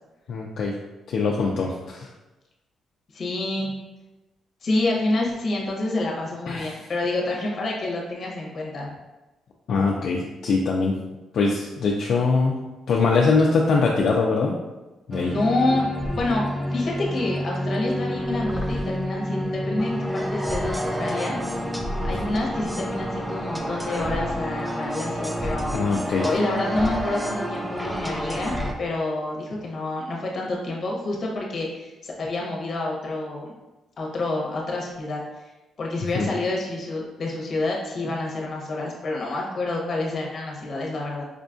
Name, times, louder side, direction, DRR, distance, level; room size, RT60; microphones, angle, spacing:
voice 1, 0.3-0.8 1.1-2.1 6.5-6.8 9.7-11.0 11.3-12.6 12.9-14.6 15.1-15.3 25.7-26.2 36.1-36.3, left 4 dB, 65° left, -2 dB, 0.4 m, -22 dB
voice 2, 3.1-3.7 4.6-8.9 15.3-15.9 16.1-21.4 22.0-25.7 26.2-33.5 34.0-35.2 35.8-41.2, left 2 dB, 45° left, -2 dB, 0.9 m, -28 dB
sound 1, 15.1-28.7, equal, 5° right, 0.3 m, -29 dB
5.0 x 2.3 x 2.5 m, 1.1 s
cardioid pair, 120°, 0 cm